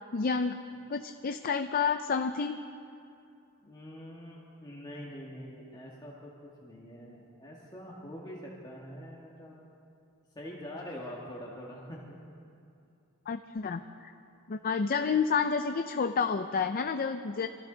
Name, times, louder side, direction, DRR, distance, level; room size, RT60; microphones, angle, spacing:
voice 1, 0.1-0.6 0.9-2.6 13.3-14.1 14.5-17.5, left 5 dB, 40° left, 7 dB, 0.5 m, -29 dB
voice 2, 3.6-6.3 6.6-9.6 10.4-12.2, equal, 20° left, -4 dB, 1.6 m, -44 dB
25.5 x 14.5 x 3.9 m, 2.6 s
head